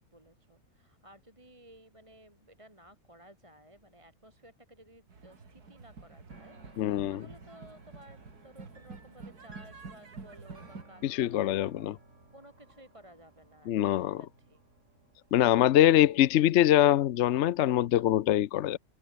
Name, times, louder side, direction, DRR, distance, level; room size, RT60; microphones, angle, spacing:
voice 1, 0.0-12.0 12.3-14.6 15.8-16.2, equal, 20° right, 4.4 m, -56 dB
sound 1, 5.1-10.8, right 4 dB, 80° right, 3.4 m, -48 dB
sound 2, 6.3-15.5, right 2 dB, 50° right, 5.1 m, -58 dB
voice 2, 6.8-7.2 11.0-11.9 13.7-14.2 15.3-18.8, left 12 dB, 65° left, 0.7 m, -24 dB
omnidirectional pair, 1.6 m